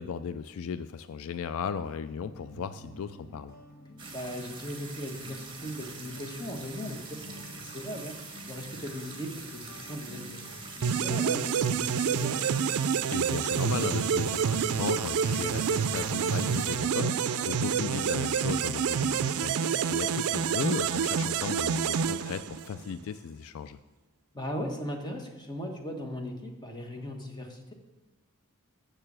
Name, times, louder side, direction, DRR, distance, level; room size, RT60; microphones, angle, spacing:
voice 1, 0.0-3.5 13.1-23.8, left 6 dB, 70° left, 13 dB, 0.3 m, -36 dB
sound 1, 2.0-17.7 18.0-20.5, left 1 dB, 45° left, 1.4 m, -52 dB
sound 2, 4.0-16.8, right 4 dB, 20° right, 1.6 m, -44 dB
voice 2, 4.1-8.1 8.5-10.2 10.5-12.5 17.2-17.5 24.3-27.7, equal, 20° left, 2 dB, 1.3 m, -38 dB
sound 3, 10.8-22.9, right 7 dB, 75° right, 0.4 m, -28 dB
6.7 x 6.7 x 7.4 m, 1.1 s
head